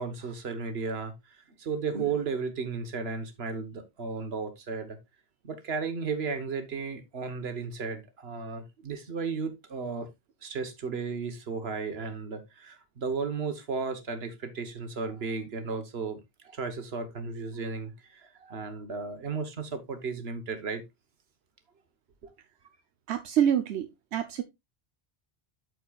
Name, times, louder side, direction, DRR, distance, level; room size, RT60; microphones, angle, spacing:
voice 1, 0.0-5.0 5.4-10.1 10.4-20.8, right 5 dB, 70° right, 1.4 m, -34 dB
voice 2, 23.1-24.4, right 9 dB, 90° right, 1.0 m, -27 dB
13.0 x 4.5 x 2.3 m
omnidirectional pair, 1.1 m